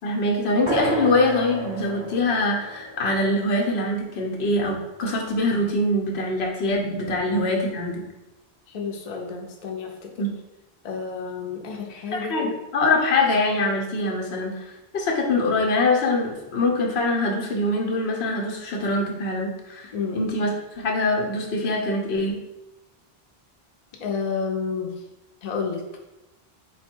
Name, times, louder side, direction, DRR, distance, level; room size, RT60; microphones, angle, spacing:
voice 1, 0.0-8.0 10.2-10.3 12.1-14.6 14.9-22.4, left 2 dB, 90° left, 0 dB, 1.0 m, -24 dB
sound 1, 0.7-4.6, equal, 10° left, 0.8 m, -33 dB
voice 2, 8.7-10.1 10.8-12.5 19.9-20.2 24.0-24.9 25.4-25.8, left 5 dB, 45° left, 1 dB, 0.6 m, -30 dB
3.9 x 2.2 x 4.3 m, 0.97 s
omnidirectional pair, 1.0 m